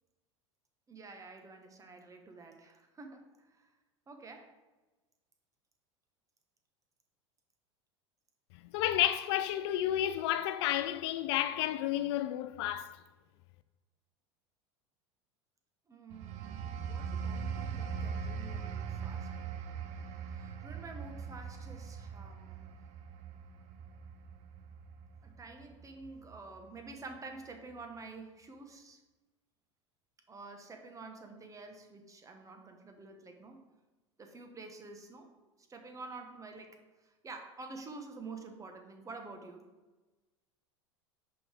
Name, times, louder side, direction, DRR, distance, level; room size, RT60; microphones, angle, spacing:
voice 1, 0.9-3.7 4.1-4.5 15.9-19.3 19.9-22.7 25.2-29.0 30.3-33.6 34.2-35.3 35.7-39.6, right 3 dB, 20° right, 1.2 m, -49 dB
voice 2, 8.7-12.9, left 12 dB, 60° left, 0.4 m, -31 dB
sound 1, 16.1-26.5 26.9-27.2, right 6 dB, 45° right, 0.7 m, -41 dB
5.5 x 5.3 x 4.4 m
hypercardioid pair, 85°, 16 cm